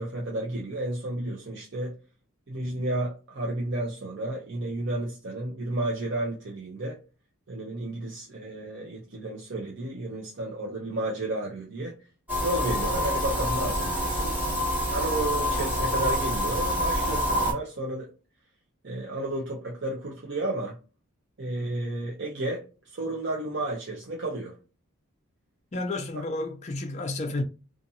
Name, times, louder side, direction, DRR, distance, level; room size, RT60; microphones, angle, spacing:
voice 1, 0.0-1.9 2.5-7.0 7.5-12.0 12.4-14.4 14.9-18.1 18.8-20.8 21.4-24.6 26.1-26.2, right 1 dB, 55° right, 0.6 m, -32 dB
sound 1, 12.3-17.5, equal, 5° right, 1.1 m, -27 dB
voice 2, 25.7-27.4, left 2 dB, 30° left, 0.4 m, -31 dB
2.6 x 2.5 x 2.7 m
head